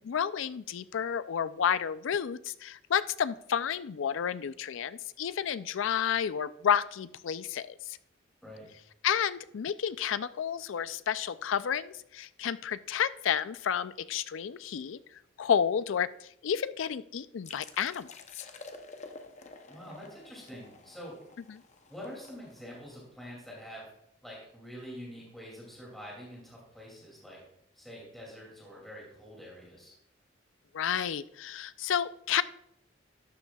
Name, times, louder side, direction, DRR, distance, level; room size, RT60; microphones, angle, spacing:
voice 1, 0.1-8.0 9.0-18.5 21.5-21.6 30.7-32.4, left 8 dB, 75° left, 15 dB, 0.4 m, -31 dB
sound 1, 17.4-23.0, left 3 dB, 35° left, 0.7 m, -50 dB
voice 2, 19.7-21.1 21.9-23.9 24.2-27.4 27.7-29.9, equal, ahead, -4 dB, 2.5 m, -46 dB
12.5 x 9.7 x 2.3 m, 0.76 s
head